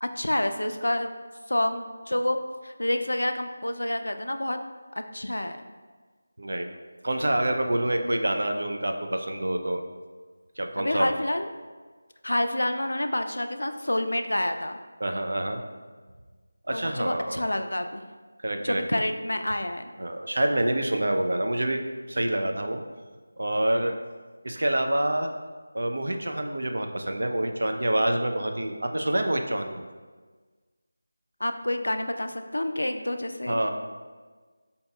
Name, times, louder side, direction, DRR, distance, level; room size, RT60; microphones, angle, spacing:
voice 1, 0.0-1.1 1.5-2.4 2.6-4.6 5.1-5.7 10.8-11.5 12.2-14.8 16.7-18.0 18.6-19.9 31.4-33.6, left 1 dB, 85° left, 7 dB, 0.3 m, -28 dB
voice 2, 6.4-6.7 7.0-9.9 10.6-11.1 15.0-15.6 16.7-17.4 18.4-19.0 20.0-21.8 22.1-22.8 23.4-24.0 24.4-25.3 25.7-29.8 33.5-33.7, right 1 dB, 70° right, 4 dB, 0.4 m, -27 dB
5.2 x 2.7 x 2.3 m, 1.4 s
figure-of-eight pair, 170°, 0 cm